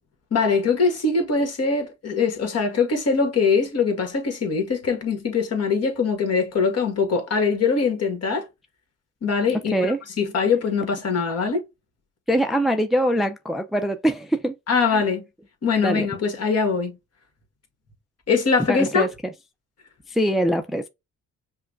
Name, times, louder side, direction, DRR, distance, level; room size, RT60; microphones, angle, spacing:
voice 1, 0.3-8.5 9.2-11.6 14.7-15.2 15.6-17.0 18.3-19.1, left 5 dB, 55° left, 1.7 m, -22 dB
voice 2, 12.3-14.5 14.9-15.0 15.8-16.1 18.7-19.1 20.1-20.9, equal, ahead, 0.5 m, -23 dB
5.5 x 2.2 x 2.5 m
cardioid pair, 90°, 30 cm